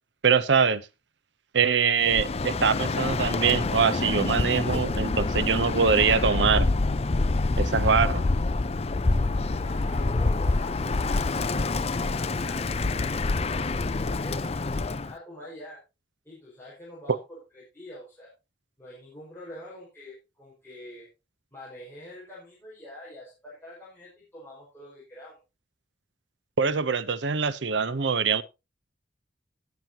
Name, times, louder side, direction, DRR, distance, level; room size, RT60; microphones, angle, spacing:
voice 1, 0.2-0.8 1.5-6.7 7.6-8.3 17.1-17.2 26.6-28.4, right 6 dB, 80° right, 0.7 m, -23 dB
Bird, 2.0-15.1, left 3 dB, 35° left, 0.5 m, -26 dB
voice 2, 9.6-15.8 16.2-18.3 18.8-21.1 21.5-25.4, left 1 dB, 10° left, 5.1 m, -46 dB
18.0 x 7.5 x 2.9 m
head